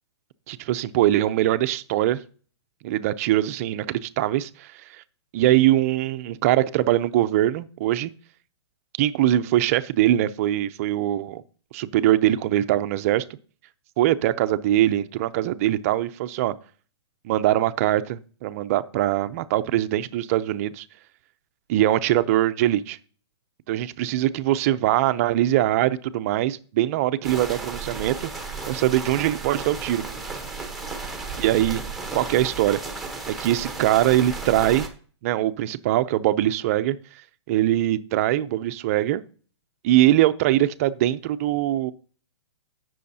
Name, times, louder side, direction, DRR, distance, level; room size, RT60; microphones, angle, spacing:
voice 1, 0.5-2.2 2.8-5.0 5.3-8.1 9.0-11.4 11.7-13.2 14.0-16.5 17.2-20.9 21.7-23.0 23.7-28.3 28.7-30.0 31.4-31.8 32.1-32.8 33.3-34.9 35.2-37.0 37.5-39.2 39.8-41.9, right 13 dB, 30° right, 0.5 m, -22 dB
sound 1, 27.2-34.9, right 4 dB, ahead, 0.9 m, -34 dB
16.5 x 6.3 x 2.7 m
hypercardioid pair, 155°, 15 cm